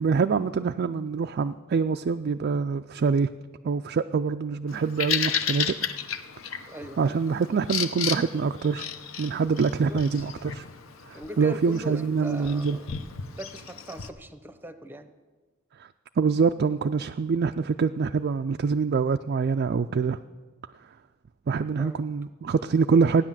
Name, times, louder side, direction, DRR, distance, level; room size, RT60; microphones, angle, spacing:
voice 1, 0.0-3.3 3.6-5.7 7.0-8.9 9.2-10.6 11.1-12.8 15.8-15.9 16.2-20.2 21.5-23.2, right 5 dB, 45° right, 7 dB, 0.3 m, -25 dB
Bird vocalization bird call bird song, 4.7-14.1, left 7 dB, 65° left, 0.8 m, -33 dB
voice 2, 6.7-7.2 9.5-10.0 11.1-15.1 21.8-22.1, equal, 10° right, 10 dB, 0.7 m, -40 dB
15.5 x 9.9 x 7.4 m, 1.4 s
head